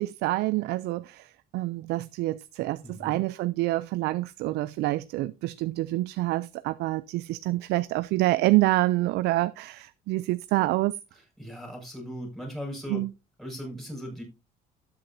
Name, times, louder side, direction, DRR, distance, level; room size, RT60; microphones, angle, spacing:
voice 1, 0.0-10.9 12.9-13.1, right 18 dB, 80° right, 0.4 m, -27 dB
voice 2, 2.8-3.2 11.4-13.0 13.4-14.2, equal, ahead, 5.5 m, -38 dB
12.5 x 8.6 x 2.7 m
cardioid pair, 110°, 17 cm